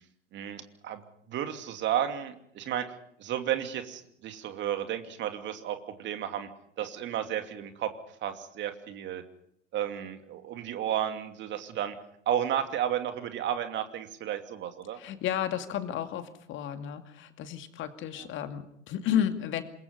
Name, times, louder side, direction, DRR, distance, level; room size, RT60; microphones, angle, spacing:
voice 1, 0.3-1.0 1.3-6.5 6.8-7.9 8.2-9.2 9.7-12.0 12.3-15.0 18.2-18.3, right 10 dB, 30° right, 8 dB, 2.6 m, -32 dB
voice 2, 14.9-19.6, left 10 dB, 35° left, 8 dB, 2.4 m, -32 dB
27.5 x 22.0 x 5.5 m, 0.69 s
figure-of-eight pair, 85°, 36 cm